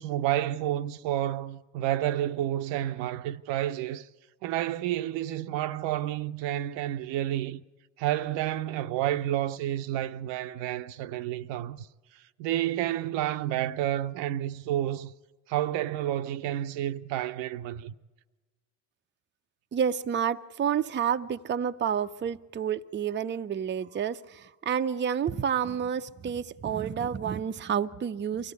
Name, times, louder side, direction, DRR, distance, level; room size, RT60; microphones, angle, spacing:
voice 1, 0.0-4.1 4.4-7.6 8.0-11.9 12.1-15.1 15.5-17.9, right 13 dB, 70° right, 0.7 m, -30 dB
voice 2, 19.7-28.5, right 8 dB, 25° right, 0.6 m, -29 dB
24.0 x 15.5 x 8.2 m
hypercardioid pair, 65°, 46 cm